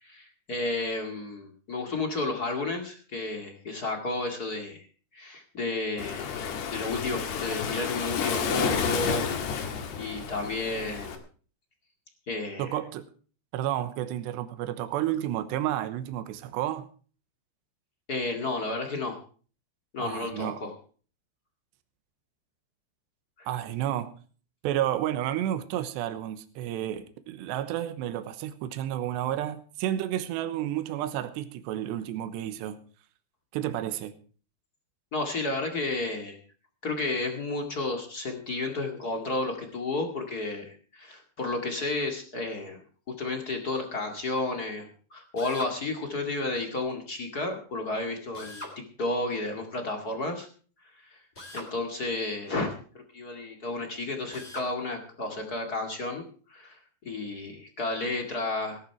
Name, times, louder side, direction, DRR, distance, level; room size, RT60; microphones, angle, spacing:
voice 1, 0.0-4.9 5.1-6.3 6.7-11.2 12.3-12.8 18.1-19.2 19.9-20.7 23.4-23.5 35.1-36.4 36.8-42.8 43.2-48.6 49.0-50.5 51.0-51.2 51.5-56.2 56.5-58.8, left 2 dB, 40° left, 1.4 m, -32 dB
Waves surf, 6.0-11.2, left 7 dB, 70° left, 3.8 m, -31 dB
voice 2, 12.6-13.1 13.5-16.9 20.0-20.6 23.5-24.1 24.6-32.8 33.5-34.1, right 12 dB, 80° right, 3.2 m, -31 dB
Drill, 45.4-45.8 48.3-48.8 51.4-51.7 54.3-54.7, left 1 dB, 15° left, 3.0 m, -41 dB
17.5 x 12.0 x 4.6 m
omnidirectional pair, 5.1 m